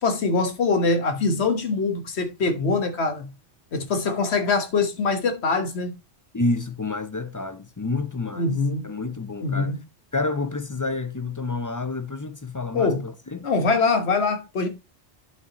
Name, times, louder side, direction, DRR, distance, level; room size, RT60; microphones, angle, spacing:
voice 1, 0.0-3.3 3.7-5.9 8.4-8.9 9.4-9.8 12.7-13.0 13.4-14.7, left 4 dB, 65° left, 1.5 m, -23 dB
voice 2, 6.3-8.5 8.8-9.7 10.1-13.5, left 3 dB, 35° left, 0.3 m, -29 dB
10.5 x 5.5 x 2.9 m
omnidirectional pair, 1.2 m